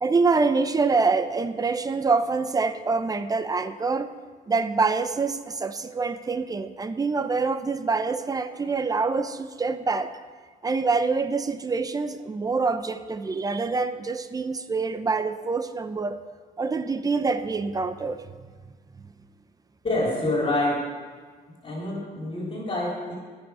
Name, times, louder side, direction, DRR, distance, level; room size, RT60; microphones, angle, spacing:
voice 1, 0.0-4.1 4.5-10.2 10.6-16.2 16.6-18.2, right 4 dB, 20° right, 11 dB, 0.6 m, -25 dB
voice 2, 19.8-20.8 21.6-23.2, left 1 dB, 30° left, -3 dB, 3.4 m, -26 dB
18.5 x 6.3 x 4.8 m, 1.6 s
cardioid pair, 110°, 17 cm